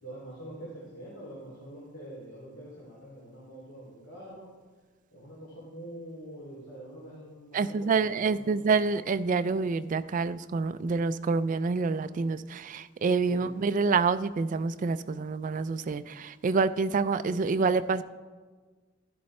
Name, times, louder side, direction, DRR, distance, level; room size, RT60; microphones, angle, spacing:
voice 1, 0.0-4.5 5.1-8.8 13.3-13.6, right 1 dB, 75° left, -6 dB, 2.9 m, -45 dB
voice 2, 7.5-18.0, right 4 dB, 40° right, 13 dB, 0.3 m, -27 dB
11.0 x 11.0 x 3.2 m, 1.4 s
head